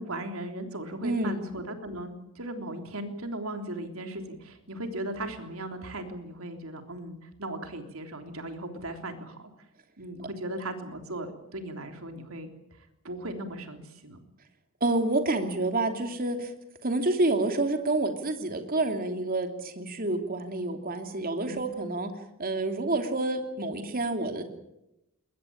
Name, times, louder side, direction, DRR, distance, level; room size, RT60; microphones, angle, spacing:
voice 1, 0.0-9.5 10.0-14.2 21.5-21.7, right 1 dB, 70° right, 6 dB, 3.5 m, -37 dB
voice 2, 1.0-1.4 14.8-16.5 16.8-22.1 22.4-24.4, right 2 dB, 40° right, 6 dB, 2.9 m, -28 dB
22.0 x 20.0 x 8.7 m, 0.87 s
head